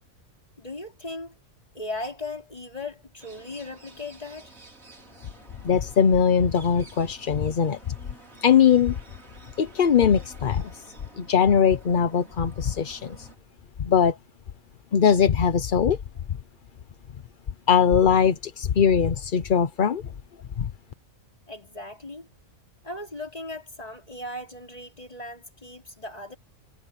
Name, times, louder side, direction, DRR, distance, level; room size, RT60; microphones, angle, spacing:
voice 1, 0.6-1.3 1.7-4.5 21.5-22.3 22.8-26.4, left 2 dB, 30° left, 4.0 m, -37 dB
sound 1, 3.2-13.4, right 3 dB, 90° right, 4.6 m, -51 dB
voice 2, 5.6-7.8 8.4-9.0 9.6-10.8 11.2-13.3 13.8-14.2 14.9-16.0 17.7-20.0 20.6-20.7, left 7 dB, 45° left, 0.8 m, -21 dB
omnidirectional pair, 1.4 m